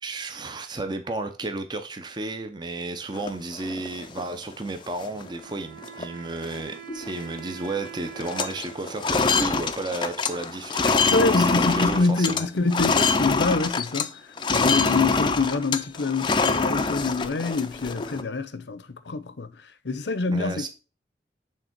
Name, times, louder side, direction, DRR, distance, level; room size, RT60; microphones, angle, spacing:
voice 1, 0.0-11.1 11.4-12.8 20.3-20.7, right 2 dB, 25° right, 0.6 m, -33 dB
sound 1, 3.1-4.2 4.7-4.8 5.0-5.4 5.8-6.0 6.3-7.4 7.6-7.9 8.1-14.1 14.4-18.2, left 4 dB, 25° left, 0.4 m, -25 dB
Wind instrument woodwind instrument, 5.2-10.7, right 8 dB, 80° right, 1.7 m, -45 dB
voice 2, 10.8-14.2 14.5-19.5 19.8-20.7, left 3 dB, 80° left, 0.7 m, -26 dB
6.6 x 3.6 x 4.5 m
head